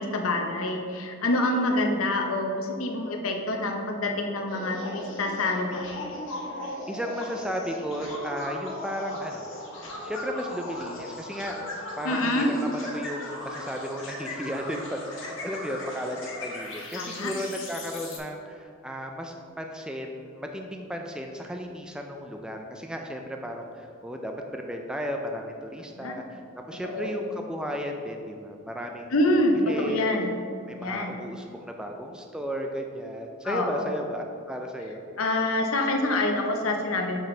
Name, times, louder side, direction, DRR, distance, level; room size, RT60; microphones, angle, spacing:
voice 1, 0.0-5.9 12.0-12.5 17.0-17.3 26.0-26.1 26.8-27.1 29.1-30.3 30.8-31.2 33.4-33.9 35.2-37.2, left 1 dB, 75° left, 3 dB, 0.8 m, -26 dB
sound 1, 4.5-18.2, left 1 dB, 60° left, 1.4 m, -38 dB
voice 2, 6.9-9.5 10.0-26.4 26.7-29.1 29.5-30.1 30.7-35.0, equal, 5° right, 2 dB, 0.3 m, -34 dB
6.5 x 6.1 x 3.2 m, 2.3 s
head